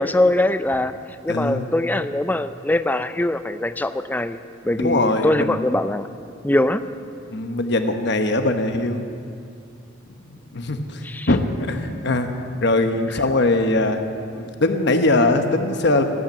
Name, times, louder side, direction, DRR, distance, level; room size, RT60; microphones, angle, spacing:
voice 1, 0.0-4.4 4.6-6.1 6.4-6.8 11.0-11.3, left 1 dB, 10° left, 11 dB, 0.4 m, -22 dB
voice 2, 1.3-1.7 4.8-5.6 7.3-9.1 10.3-11.4 11.7-12.3 12.6-14.0 14.3-16.0, left 2 dB, 60° left, 6 dB, 1.1 m, -21 dB
14.0 x 8.8 x 8.9 m, 2.4 s
head